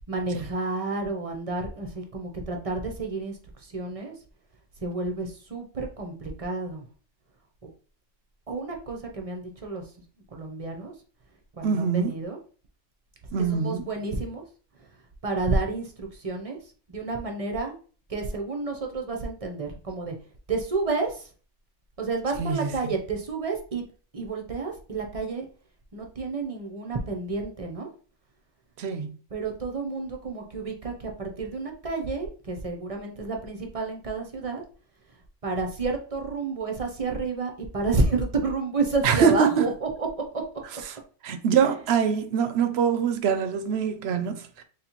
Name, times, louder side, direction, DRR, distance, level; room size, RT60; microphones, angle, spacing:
voice 1, 0.1-4.2 4.8-6.8 7.6-7.7 8.5-9.8 10.3-10.9 11.5-12.4 13.5-14.4 15.2-16.6 16.9-17.7 18.1-20.2 20.5-21.3 22.0-23.8 24.1-25.5 25.9-27.9 29.3-34.6 35.4-40.1, right 3 dB, 35° right, 0.6 m, -30 dB
voice 2, 11.6-12.1 13.3-13.8 22.4-22.9 28.8-29.1 39.0-39.6 41.2-44.6, right 6 dB, 70° right, 0.8 m, -24 dB
4.1 x 3.1 x 2.9 m
omnidirectional pair, 1.2 m